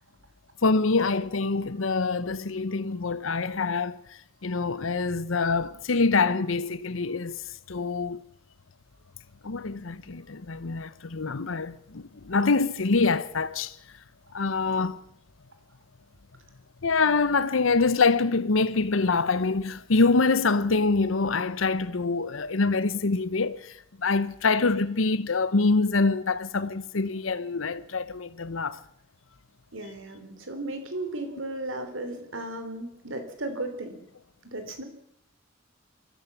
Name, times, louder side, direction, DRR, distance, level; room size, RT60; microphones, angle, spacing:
voice 1, 0.6-7.4 7.7-8.2 9.4-13.8 14.3-15.0 16.8-28.8, left 4 dB, 80° left, 0.9 m, -25 dB
voice 2, 29.7-34.0 34.5-34.8, right 2 dB, 75° right, 3.7 m, -35 dB
23.5 x 15.5 x 7.2 m
head